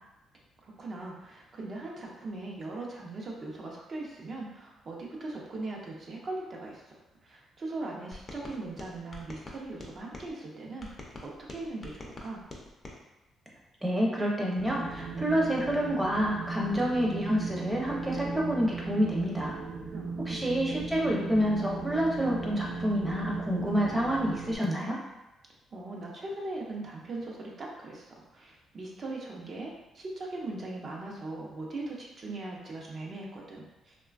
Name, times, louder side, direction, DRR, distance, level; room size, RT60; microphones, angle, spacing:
voice 1, 0.6-6.8 7.2-12.4 19.9-20.4 25.7-34.0, right 2 dB, 45° right, -2 dB, 0.6 m, -40 dB
sound 1, 8.1-10.3 10.8-13.0, left 2 dB, 35° left, 0.5 m, -45 dB
voice 2, 13.8-19.6 20.3-25.0, equal, 10° right, -3 dB, 0.7 m, -28 dB
Wind, 14.6-24.6, right 4 dB, 75° right, 0.3 m, -37 dB
3.0 x 2.2 x 2.4 m, 1.0 s
cardioid pair, 90°, 0 cm